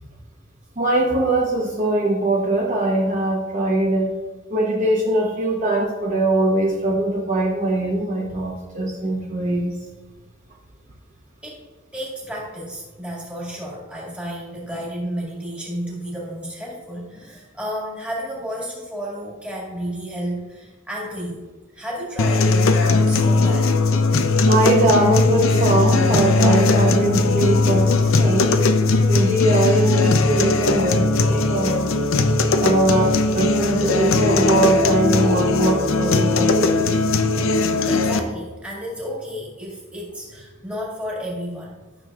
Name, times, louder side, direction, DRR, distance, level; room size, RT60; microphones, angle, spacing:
voice 1, 0.8-4.1 4.5-9.7 24.5-31.9 32.6-37.0, right 1 dB, 35° right, -3 dB, 0.9 m, -21 dB
voice 2, 11.9-21.5 21.7-23.7 37.9-41.8, equal, 5° right, -5 dB, 2.0 m, -32 dB
sound 1, 22.2-38.2, left 3 dB, 80° left, 0.6 m, -19 dB
12.5 x 6.6 x 2.4 m, 1.3 s
head